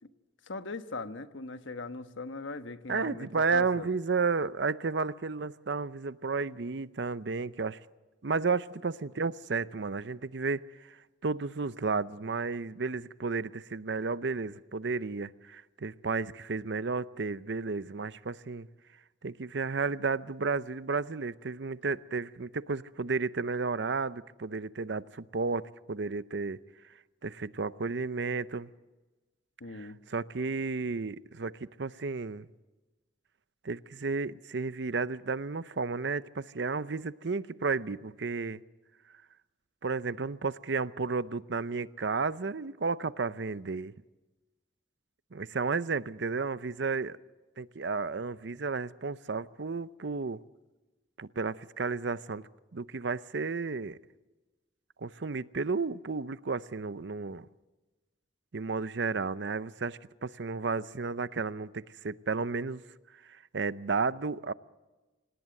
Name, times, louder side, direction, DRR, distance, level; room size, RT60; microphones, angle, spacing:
voice 1, 0.5-3.9 29.6-30.0, left 3 dB, 85° left, 10 dB, 1.2 m, -40 dB
voice 2, 2.9-7.8 8.2-11.0 11.2-18.7 19.2-26.6 27.2-28.7 29.7-31.5 31.8-32.5 33.6-38.6 39.8-43.9 45.3-47.2 47.6-50.4 51.2-52.4 52.7-54.0 55.0-57.5 58.5-62.8 63.3-64.5, right 4 dB, 65° right, 16 dB, 0.7 m, -32 dB
26.5 x 18.0 x 7.7 m, 1.2 s
head